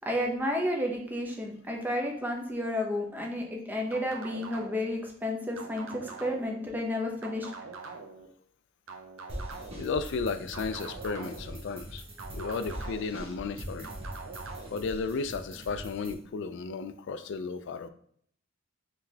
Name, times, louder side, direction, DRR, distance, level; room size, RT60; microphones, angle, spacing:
voice 1, 0.0-7.5, left 1 dB, 10° right, 1 dB, 0.6 m, -31 dB
sound 1, 3.9-5.0 5.6-6.6 7.2-8.3 8.9-9.9 10.5-11.6 12.2-13.2 13.8-14.7, right 4 dB, 80° right, 0.6 m, -44 dB
sound 2, 9.3-16.1, right 1 dB, 30° right, 1.0 m, -42 dB
voice 2, 9.8-12.0 12.3-13.9 14.7-17.9, left 4 dB, 60° left, 10 dB, 0.3 m, -34 dB
3.9 x 3.2 x 2.8 m, 0.65 s
head